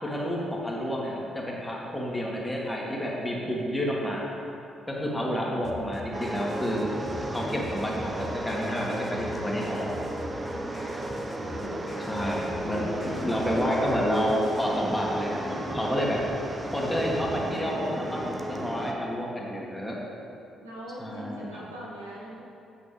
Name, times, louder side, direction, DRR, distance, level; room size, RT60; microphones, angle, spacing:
voice 1, 0.0-4.3 4.9-6.9 7.3-10.0 12.1-12.8 13.2-16.2 16.7-20.0 21.0-21.6, equal, 10° left, -3 dB, 2.1 m, -30 dB
sound 1, 5.6-14.7, left 3 dB, 40° left, 0.9 m, -45 dB
sound 2, 6.1-18.9, right 1 dB, 25° right, 0.8 m, -34 dB
voice 2, 11.6-11.9 12.6-13.7 20.6-22.4, equal, 85° right, -6 dB, 1.2 m, -40 dB
8.2 x 8.2 x 3.4 m, 2.6 s
figure-of-eight pair, 45°, 0 cm